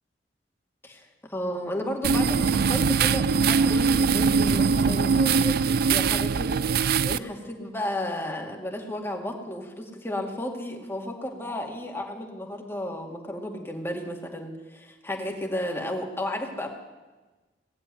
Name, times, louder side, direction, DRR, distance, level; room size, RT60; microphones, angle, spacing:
voice 1, 0.8-16.7, left 1 dB, 15° left, 0 dB, 2.2 m, -33 dB
sound 1, 2.0-7.2, right 5 dB, 60° right, 0.4 m, -22 dB
19.0 x 7.5 x 9.6 m, 1.2 s
head